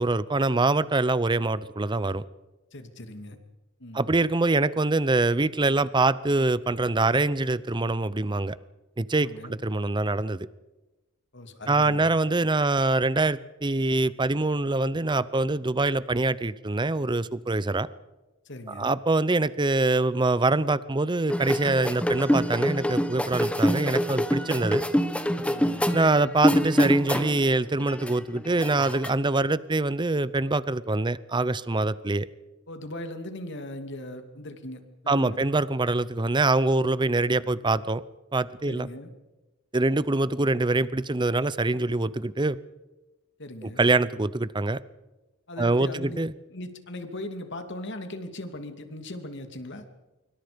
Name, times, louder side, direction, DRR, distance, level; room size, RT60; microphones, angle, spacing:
voice 1, 0.0-2.2 3.9-8.6 9.0-10.5 11.7-17.9 18.7-24.8 25.9-32.3 35.1-38.0 38.3-38.9 39.7-42.6 43.6-44.8 45.6-46.3, right 2 dB, 25° right, 17 dB, 0.7 m, -24 dB
voice 2, 2.7-3.4 3.8-4.0 9.1-9.6 11.3-12.1 18.5-18.9 25.4-25.9 32.7-35.4 38.7-39.1 43.4-43.8 45.5-46.2 46.5-49.8, left 1 dB, 60° left, 7 dB, 2.7 m, -39 dB
sound 1, 21.3-27.5 27.8-29.1, equal, 5° left, 1.4 m, -25 dB
26.0 x 24.0 x 5.2 m, 1.1 s
head